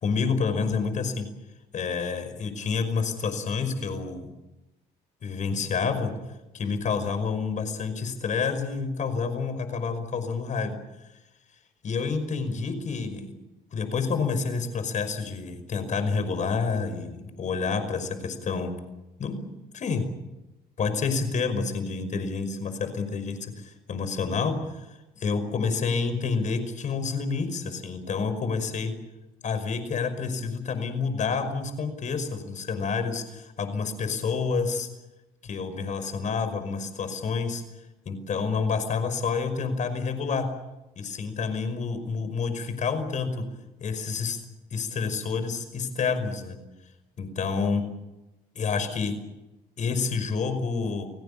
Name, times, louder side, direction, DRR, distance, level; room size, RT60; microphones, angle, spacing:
voice 1, 0.0-1.3 1.7-4.3 5.2-6.1 6.5-10.7 11.8-13.3 13.7-18.7 19.2-20.1 20.8-28.9 29.4-34.9 35.4-37.6 38.1-40.5 41.0-43.4 43.8-44.4 44.7-46.6 47.2-47.8 48.6-49.1 49.8-51.1, left 5 dB, 45° left, 9 dB, 5.4 m, -28 dB
29.5 x 18.0 x 8.6 m, 1.0 s
cardioid pair, 110°, 17 cm